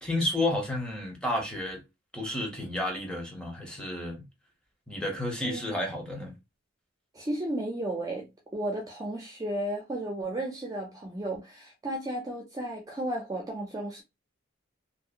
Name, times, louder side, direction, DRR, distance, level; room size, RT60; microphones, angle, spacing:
voice 1, 0.0-1.8 2.1-4.2 4.9-6.3, left 1 dB, 5° left, 0.8 m, -31 dB
voice 2, 7.1-14.0, right 1 dB, 20° right, 0.4 m, -34 dB
2.7 x 2.0 x 2.4 m
head